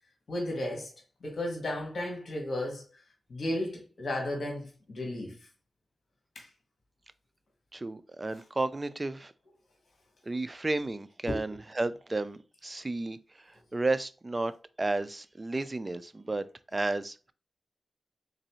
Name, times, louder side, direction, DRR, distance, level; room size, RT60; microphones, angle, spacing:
voice 1, 0.3-0.9 1.2-2.8 3.3-5.3 6.3-6.5 11.3-11.4, left 1 dB, 65° left, 1.5 m, -34 dB
voice 2, 7.7-9.3 10.2-14.5 14.8-16.5 16.7-17.3, right 2 dB, 30° right, 0.4 m, -32 dB
3.8 x 3.1 x 3.0 m
cardioid pair, 50°, 0 cm